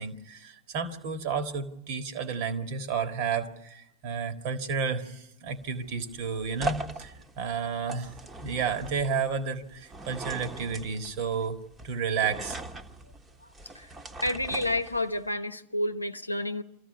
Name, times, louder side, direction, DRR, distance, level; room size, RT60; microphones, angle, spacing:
voice 1, 0.0-11.6 11.8-12.6, right 6 dB, 45° right, 1.9 m, -31 dB
sound 1, 5.5-15.3, right 2 dB, 15° right, 1.4 m, -41 dB
voice 2, 14.2-16.6, left 1 dB, 85° left, 0.9 m, -29 dB
24.5 x 15.0 x 9.5 m
figure-of-eight pair, 90°, 0 cm